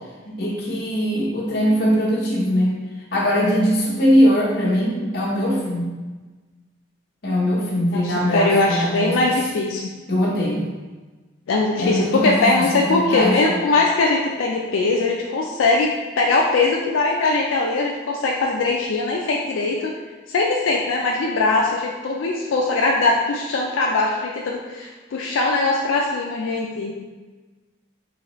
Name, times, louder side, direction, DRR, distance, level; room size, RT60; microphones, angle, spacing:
voice 1, 0.2-2.7 3.1-5.9 7.2-9.1 10.1-10.6 11.8-13.5, equal, 55° left, -3 dB, 0.8 m, -21 dB
voice 2, 7.9-9.8 11.5-19.9 20.3-26.9, left 3 dB, 80° left, -1 dB, 0.4 m, -21 dB
4.0 x 3.0 x 3.0 m, 1.3 s
head